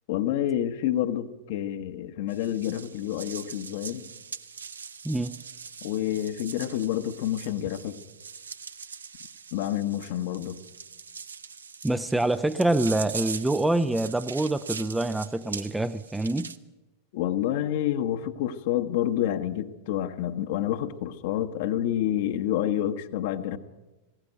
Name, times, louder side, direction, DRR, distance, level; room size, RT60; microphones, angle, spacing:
voice 1, 0.1-4.1 5.8-8.0 9.5-10.6 17.1-23.6, left 11 dB, 50° left, 1.1 m, -28 dB
sound 1, 2.3-16.6, right 6 dB, 70° right, 0.7 m, -41 dB
voice 2, 5.0-5.4 11.8-16.5, right 2 dB, 5° right, 0.6 m, -26 dB
19.5 x 16.5 x 9.1 m
figure-of-eight pair, 90°, 0 cm